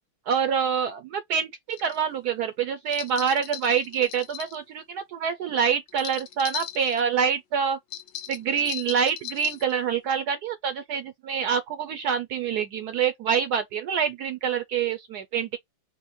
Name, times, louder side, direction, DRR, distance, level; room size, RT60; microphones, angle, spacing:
voice 1, 0.3-7.8 8.3-15.6, right 7 dB, 75° right, 0.9 m, -26 dB
sound 1, 1.7-2.0 2.9-4.6 5.9-7.0 7.9-9.7, left 12 dB, 80° left, 1.5 m, -37 dB
4.5 x 2.1 x 4.2 m
omnidirectional pair, 2.2 m